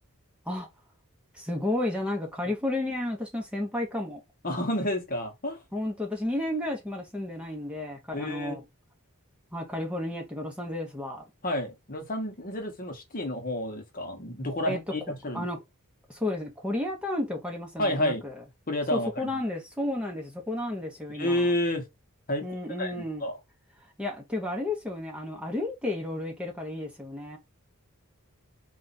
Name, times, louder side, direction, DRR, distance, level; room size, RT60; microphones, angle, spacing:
voice 1, 1.3-4.2 5.7-8.6 9.5-11.2 14.7-14.8 15.3-15.6 16.1-18.4 18.9-21.5 22.4-23.2 24.0-27.4, left 1 dB, 5° right, 1.1 m, -32 dB
voice 2, 4.4-5.6 8.1-8.6 11.4-15.5 17.8-18.2 18.7-19.3 21.1-21.8 22.3-22.5 22.8-23.3, left 1 dB, 40° left, 1.0 m, -30 dB
4.1 x 2.5 x 4.1 m
head